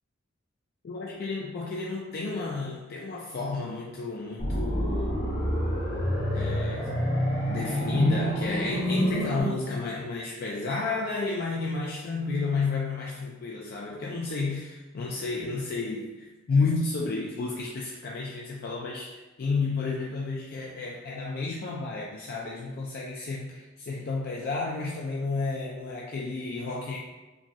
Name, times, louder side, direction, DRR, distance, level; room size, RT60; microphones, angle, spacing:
voice 1, 0.8-5.3 6.3-7.0 7.5-27.0, left 3 dB, 50° left, -1 dB, 0.3 m, -31 dB
sound 1, 4.4-9.4, equal, 80° left, 1.3 m, -27 dB
4.7 x 2.3 x 2.7 m, 1.1 s
head